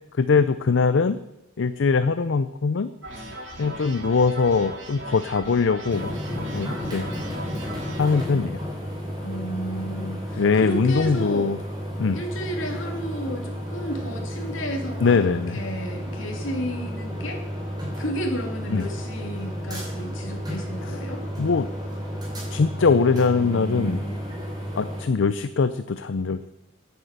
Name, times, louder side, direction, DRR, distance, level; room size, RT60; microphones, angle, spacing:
voice 1, 0.2-1.2 1.6-2.9 3.6-6.1 6.5-7.1 8.0-8.6 10.4-11.6 12.0-12.2 15.0-15.6 18.7-18.8 20.8-21.0 21.4-21.7 22.5-24.0 24.8-26.6, left 4 dB, 70° left, 12 dB, 0.5 m, -22 dB
sound 1, 3.0-8.2, right 1 dB, 75° right, 2.4 m, -38 dB
sound 2, 5.9-25.0, equal, 20° right, 5.1 m, -32 dB
voice 2, 6.4-7.0 9.2-11.5 12.1-17.4 18.0-21.2, equal, 90° left, 2 dB, 2.6 m, -33 dB
10.0 x 8.8 x 8.0 m, 0.89 s
head